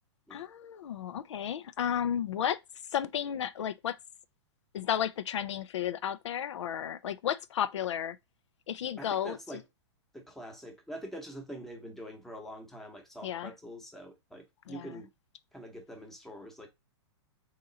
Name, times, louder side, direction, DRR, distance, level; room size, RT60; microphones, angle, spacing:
voice 1, 0.3-2.6 2.9-4.0 4.7-8.2 8.7-9.4 13.2-13.5 14.7-14.9, left 9 dB, 90° left, 0.4 m, -33 dB
voice 2, 9.0-9.6 10.1-15.1 15.5-16.7, equal, ahead, 0.8 m, -45 dB
3.7 x 2.9 x 3.8 m
hypercardioid pair, 150°, 15 cm